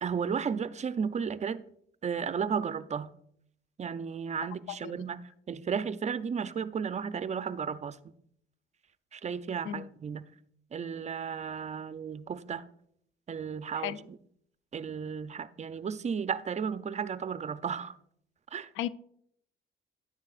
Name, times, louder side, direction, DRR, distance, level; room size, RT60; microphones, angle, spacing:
voice 1, 0.0-1.6 2.0-3.1 3.8-5.2 5.5-8.0 9.1-10.3 10.7-12.6 13.3-14.2 14.7-17.9 18.5-18.7, right 6 dB, 35° right, 0.5 m, -34 dB
voice 2, 4.7-5.0 9.6-9.9 13.7-14.0 18.8-18.9, left 12 dB, 85° left, 0.5 m, -35 dB
10.5 x 9.3 x 2.4 m
cardioid pair, 90°, 20 cm